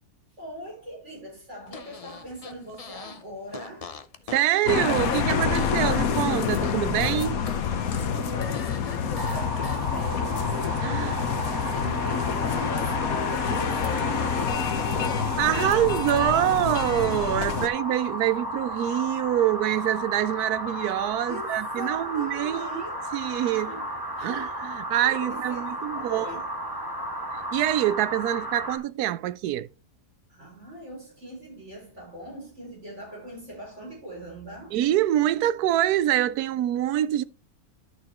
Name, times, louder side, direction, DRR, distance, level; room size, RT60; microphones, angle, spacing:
voice 1, 0.4-3.9 7.9-10.6 11.0-14.7 17.4-17.7 21.3-23.1 23.6-24.6 25.0-26.5 30.3-34.8, right 1 dB, 45° right, 5.2 m, -41 dB
Fart, 1.7-3.2 3.5-6.7 7.0-9.8, left 5 dB, 50° left, 0.4 m, -41 dB
voice 2, 4.3-7.4 10.8-11.1 15.4-22.7 23.1-23.7 24.2-26.3 27.5-29.7 34.7-37.2, right 12 dB, 80° right, 1.1 m, -25 dB
sound 1, 4.7-17.7, left 7 dB, 65° left, 1.4 m, -27 dB
sound 2, 9.2-28.8, equal, 15° right, 2.0 m, -33 dB
11.0 x 6.7 x 3.0 m
omnidirectional pair, 1.6 m